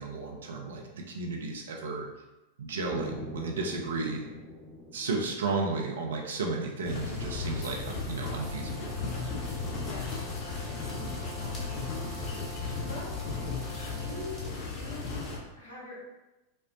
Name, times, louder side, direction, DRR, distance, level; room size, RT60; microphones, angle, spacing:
voice 1, 0.0-2.1 2.6-4.3 4.9-8.9, right 3 dB, 65° right, 1 dB, 0.6 m, -33 dB
sound 1, 2.9-6.8, left 1 dB, 10° left, 1.0 m, -43 dB
sound 2, 6.8-15.4, left 4 dB, 35° left, 1.0 m, -35 dB
Brass instrument, 8.2-14.5, right 3 dB, 25° right, 0.4 m, -48 dB
voice 2, 11.4-12.0 12.8-13.2 13.9-16.0, left 2 dB, 70° left, -6 dB, 1.4 m, -44 dB
5.3 x 2.1 x 2.7 m, 1.0 s
figure-of-eight pair, 90°, 0 cm